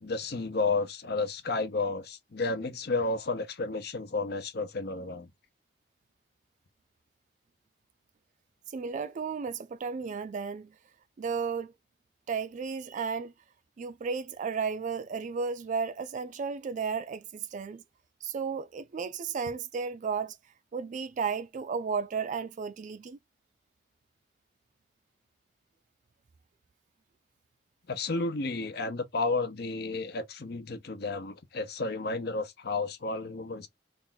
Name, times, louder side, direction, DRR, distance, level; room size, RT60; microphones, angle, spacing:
voice 1, 0.0-5.3 27.9-33.7, left 3 dB, 60° left, 0.8 m, -32 dB
voice 2, 8.7-10.7 11.2-11.7 12.3-13.3 13.8-17.8 18.2-20.4 20.7-23.2, right 5 dB, 45° right, 0.3 m, -33 dB
3.4 x 2.5 x 3.9 m
head